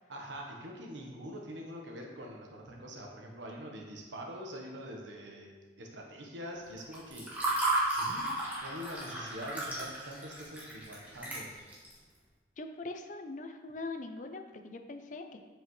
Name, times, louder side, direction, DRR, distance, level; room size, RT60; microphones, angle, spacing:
voice 1, 0.1-7.3 7.9-8.3 8.6-11.5, equal, 85° right, 0 dB, 1.1 m, -44 dB
Water / Fill (with liquid), 6.8-11.9, right 2 dB, 10° right, 1.3 m, -34 dB
voice 2, 12.6-15.4, left 3 dB, 45° left, 6 dB, 0.5 m, -42 dB
7.8 x 5.0 x 3.2 m, 1.4 s
head